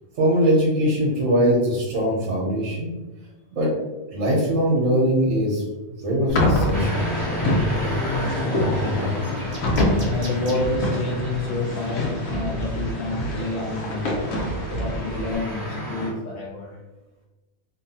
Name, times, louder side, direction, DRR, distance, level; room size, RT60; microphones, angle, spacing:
voice 1, 0.2-2.9 3.5-3.7 4.1-5.6 6.0-7.0 8.2-8.3, equal, 70° right, -3 dB, 1.1 m, -21 dB
sound 1, 6.3-15.4, left 1 dB, 85° left, 1.0 m, -26 dB
sound 2, 6.7-16.1, left 1 dB, 15° left, 0.9 m, -30 dB
voice 2, 8.2-9.4 10.0-14.3 14.7-16.8, left 2 dB, 65° left, -4 dB, 0.5 m, -29 dB
sound 3, 9.0-10.6 11.8-12.0 12.6-13.8, right 1 dB, 30° right, 0.4 m, -42 dB
2.7 x 2.3 x 2.7 m, 1.1 s
omnidirectional pair, 1.4 m